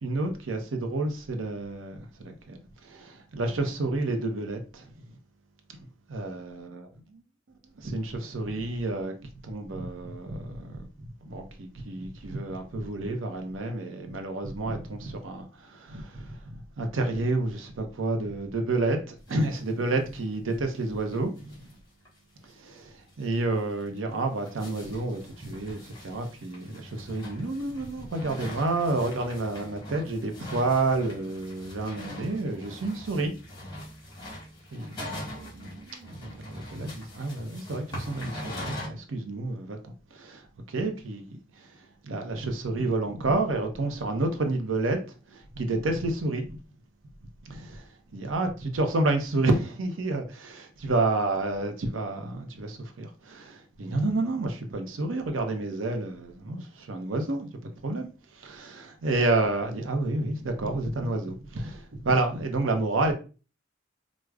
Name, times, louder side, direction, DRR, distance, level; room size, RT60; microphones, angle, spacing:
voice 1, 0.0-5.2 6.1-7.2 7.8-21.7 22.4-33.3 34.7-46.5 47.4-47.9 48.1-57.5 57.8-63.1, right 2 dB, 90° right, 0.6 m, -30 dB
sound 1, 19.3-19.7 20.0-20.1 20.3-20.4 20.8-20.9 21.1-21.7 22.0-22.1 22.5-22.6 23.1-23.2 23.8-38.9, left 1 dB, 20° left, 1.4 m, -42 dB
4.7 x 2.0 x 2.3 m
head